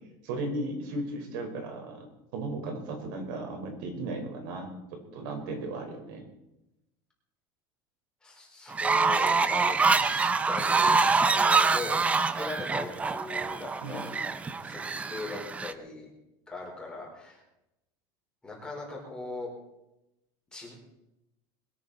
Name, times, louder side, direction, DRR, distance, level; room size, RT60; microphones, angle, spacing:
voice 1, 0.2-2.1 2.3-6.2 13.8-14.0, right 2 dB, 75° right, 3 dB, 5.1 m, -36 dB
voice 2, 8.2-11.0 11.2-14.2 14.6-14.8 15.1-16.1 16.5-17.4 18.4-19.5 20.5-20.7, left 3 dB, 10° left, -3 dB, 4.8 m, -40 dB
Fowl, 8.7-15.7, right 4 dB, 10° right, 0.6 m, -25 dB
21.5 x 14.0 x 4.4 m, 0.89 s
cardioid pair, 175°, 11 cm